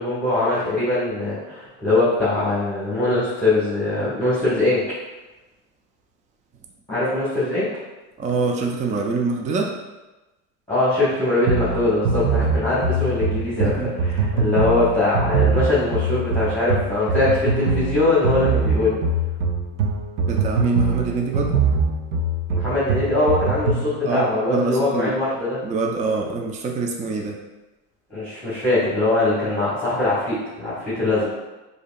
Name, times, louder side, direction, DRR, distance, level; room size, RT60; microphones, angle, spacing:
voice 1, 0.0-4.9 6.9-7.7 10.7-19.0 22.5-25.6 28.1-31.3, left 2 dB, 5° left, -11 dB, 1.5 m, -22 dB
voice 2, 8.2-9.7 13.6-14.3 20.2-21.5 24.0-25.2 25.6-27.4, right 4 dB, 20° right, 1 dB, 0.4 m, -25 dB
sound 1, 11.5-23.9, right 3 dB, 80° right, 0.7 m, -23 dB
4.8 x 2.7 x 2.4 m, 1.1 s
supercardioid pair, 105°, 38 cm